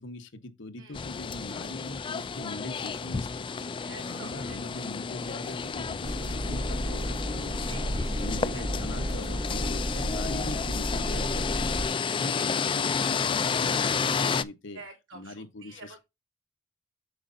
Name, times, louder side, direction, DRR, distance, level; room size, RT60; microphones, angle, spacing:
voice 1, 0.0-7.8 8.2-11.7 12.1-14.8 15.1-16.0, left 2 dB, 60° left, 1.1 m, -41 dB
sound 1, 0.9-14.4, left 5 dB, 25° left, 0.3 m, -31 dB
voice 2, 3.8-4.9 7.6-8.1 8.5-8.6 10.2-10.5 12.1-12.5 14.7-16.0, right 3 dB, 65° right, 3.3 m, -49 dB
sound 2, 6.0-11.9, equal, 35° right, 0.8 m, -32 dB
7.8 x 6.6 x 2.7 m
head